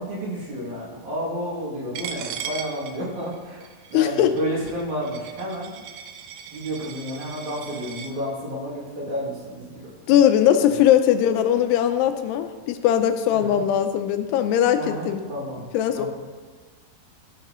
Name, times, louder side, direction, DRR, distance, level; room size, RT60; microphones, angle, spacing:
voice 1, 0.0-5.9 6.5-9.9 10.6-10.8 13.3-13.6 14.8-15.6 16.0-16.1, equal, 50° right, -7 dB, 3.6 m, -31 dB
Coin (dropping), 1.9-8.1, right 7 dB, 85° right, 2.7 m, -38 dB
voice 2, 3.9-4.4 10.1-15.2 15.7-16.1, left 10 dB, 85° left, 8 dB, 2.6 m, -20 dB
15.0 x 6.8 x 3.0 m, 1.4 s
omnidirectional pair, 4.8 m